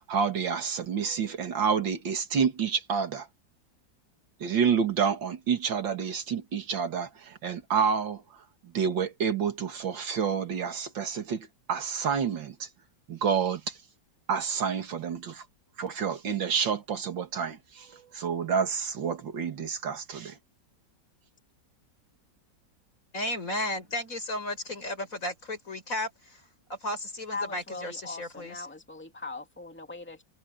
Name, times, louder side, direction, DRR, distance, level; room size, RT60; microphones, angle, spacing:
voice 1, 0.1-3.3 4.4-8.2 8.7-12.7 13.1-13.7 14.3-15.4 15.8-20.3, right 6 dB, 80° right, 2.6 m, -29 dB
voice 2, 23.1-26.4 26.7-28.7, left 1 dB, 45° left, 6.3 m, -34 dB
voice 3, 27.3-30.2, left 3 dB, 5° left, 2.7 m, -39 dB
omnidirectional pair, 2.0 m